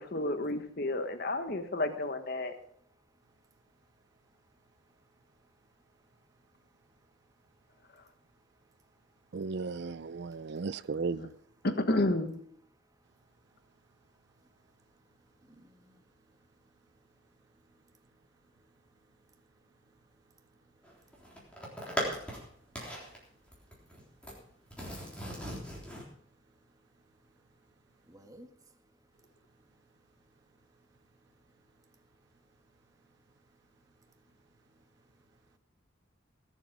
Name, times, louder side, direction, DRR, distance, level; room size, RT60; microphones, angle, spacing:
voice 1, 0.0-2.6 11.1-11.3 11.6-12.4, left 1 dB, 50° left, 1.4 m, -31 dB
voice 2, 9.3-11.3, right 4 dB, 55° right, 0.4 m, -35 dB
voice 3, 14.8-17.0 17.4-18.3 18.6-18.7 19.1-19.5 19.9-20.1 20.4-20.9 21.7-21.8 23.3-24.0 24.6-24.7 25.9-27.3 28.0-28.6 28.9-29.0 29.2-29.8 30.3-30.4 30.7-30.8 31.1-31.3 31.6-32.1 34.0-34.1 34.7-34.9, right 1 dB, 15° right, 1.5 m, -63 dB
sound 1, 20.8-22.4 22.7-23.2 23.5-24.4 24.7-26.0, equal, 5° left, 3.7 m, -38 dB
19.5 x 7.7 x 5.3 m
head